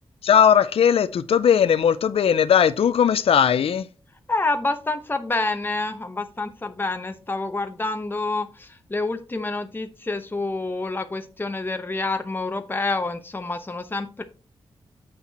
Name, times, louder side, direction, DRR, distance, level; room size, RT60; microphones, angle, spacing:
voice 1, 0.2-3.8, left 8 dB, 75° left, 0.5 m, -18 dB
voice 2, 4.3-14.2, left 2 dB, 20° left, 0.9 m, -28 dB
7.9 x 5.9 x 4.2 m
cardioid pair, 80°, 10 cm